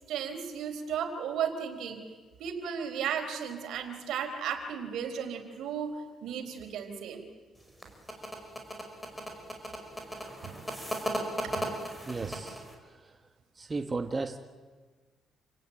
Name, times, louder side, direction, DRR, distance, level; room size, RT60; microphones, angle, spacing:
voice 1, 0.1-2.0 2.4-5.9 6.2-7.2 10.4-10.6 11.4-11.7 12.2-12.3, right 8 dB, 80° right, 5 dB, 4.1 m, -35 dB
sound 1, 7.6-12.7, equal, 5° left, 5.4 m, -36 dB
voice 2, 12.1-12.6 12.9-13.2 13.6-14.4, right 3 dB, 25° right, 6 dB, 1.5 m, -35 dB
28.5 x 18.0 x 9.1 m, 1.4 s
cardioid pair, 90°, 0 cm